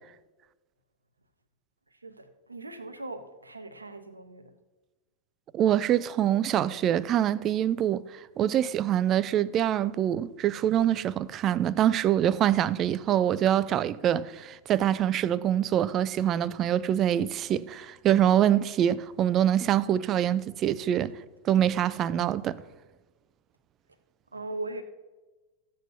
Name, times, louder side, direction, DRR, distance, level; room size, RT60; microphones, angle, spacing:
voice 1, 1.9-4.5 24.3-24.8, right 2 dB, 80° right, 0.8 m, -39 dB
voice 2, 5.5-21.1 21.4-22.6, right 11 dB, 30° right, 0.3 m, -25 dB
14.5 x 8.0 x 2.8 m
figure-of-eight pair, 90°, 0 cm